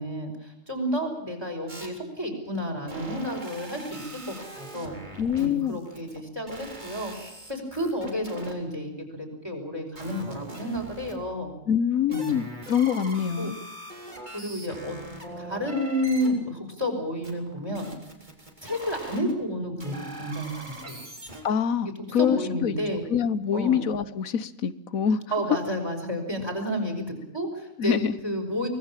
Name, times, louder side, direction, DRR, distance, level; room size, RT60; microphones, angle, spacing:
voice 1, 0.0-5.0 5.4-7.1 7.5-11.5 12.1-12.3 13.4-13.5 14.3-15.0 15.4-17.9 18.6-21.1 22.2-23.0 23.5-23.8 25.3-28.0 28.2-28.7, equal, 20° right, 4 dB, 5.2 m, -31 dB
sound 1, 1.7-1.9 2.9-6.2 6.5-8.5 10.0-11.1 12.1-16.3 17.2-19.3 19.8-21.4, right 1 dB, 35° right, 3.8 m, -41 dB
voice 2, 5.2-5.8 11.7-13.6 21.4-25.2 27.8-28.2, left 8 dB, 85° left, 15 dB, 1.4 m, -25 dB
24.0 x 19.5 x 7.4 m, 0.86 s
omnidirectional pair, 1.4 m